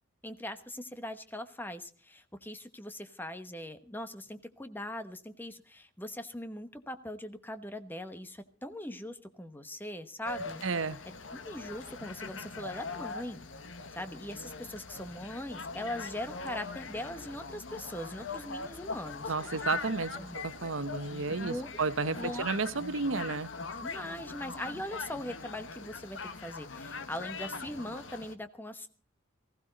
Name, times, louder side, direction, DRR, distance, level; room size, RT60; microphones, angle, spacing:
voice 1, 0.2-10.6 11.3-13.4 13.9-19.3 20.2-20.4 21.4-21.7 22.2-22.5 23.8-28.9, left 1 dB, 10° left, 1.1 m, -41 dB
sound 1, 10.2-28.3, left 4 dB, 70° left, 1.4 m, -41 dB
voice 2, 10.6-11.0 19.3-23.5, right 4 dB, 85° right, 1.0 m, -32 dB
19.5 x 15.5 x 4.0 m
head